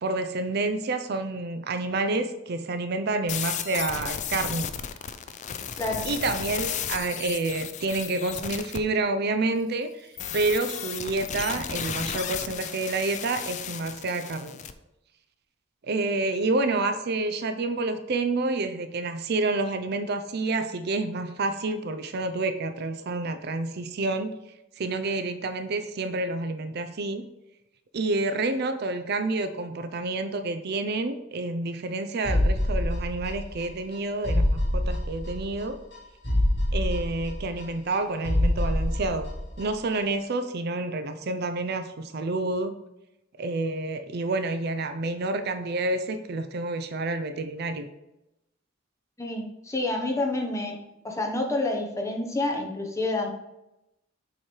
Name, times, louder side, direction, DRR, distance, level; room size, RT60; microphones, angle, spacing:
voice 1, 0.0-4.7 6.0-10.1 10.3-14.6 15.8-24.3 24.8-27.3 27.9-35.8 36.7-39.3 39.6-42.7 43.4-47.9, right 2 dB, 55° right, 8 dB, 0.5 m, -28 dB
sound 1, 3.3-8.8 10.2-14.7, left 8 dB, 40° left, 0.4 m, -34 dB
sound 2, 32.2-33.6 33.9-34.0 34.2-35.6 35.9-36.0 36.2-38.0 38.2-39.6 39.9-40.0, left 1 dB, 60° left, 1.8 m, -25 dB
voice 2, 49.2-50.8 51.0-53.3, left 2 dB, 15° left, 2 dB, 0.9 m, -28 dB
7.3 x 3.2 x 4.4 m, 0.90 s
head